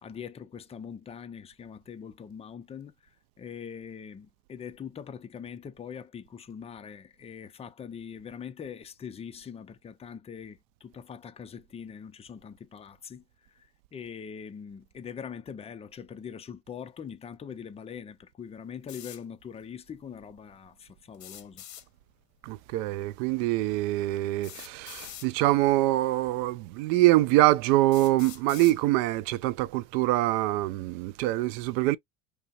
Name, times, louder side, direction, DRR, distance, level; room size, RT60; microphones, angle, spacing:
voice 1, 0.0-2.9 3.4-13.2 13.5-13.7 13.9-21.6, left 7 dB, 15° left, 0.4 m, -42 dB
sound 1, 18.9-19.2 21.1-21.9 23.3-23.4 24.4-25.3 26.3-26.4 27.1-27.2 27.9-28.8, left 11 dB, 40° left, 0.9 m, -44 dB
voice 2, 22.4-32.0, right 16 dB, 65° right, 0.5 m, -24 dB
5.1 x 2.1 x 2.4 m
hypercardioid pair, 85°, 45 cm